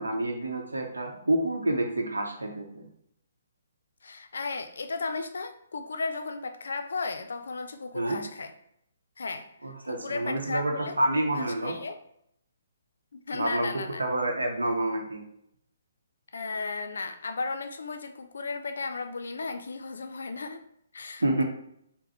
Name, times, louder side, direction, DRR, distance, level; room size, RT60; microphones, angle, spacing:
voice 1, 0.0-2.9 7.9-8.2 9.6-11.8 13.3-15.2 21.2-21.4, right 1 dB, 85° right, 3 dB, 0.7 m, -28 dB
voice 2, 4.0-8.5 9.2-9.5 9.8-11.9 13.1-14.0 16.3-20.6 20.9-21.4, left 3 dB, 70° left, 8 dB, 0.4 m, -35 dB
3.9 x 2.0 x 2.9 m, 0.73 s
figure-of-eight pair, 135°, 0 cm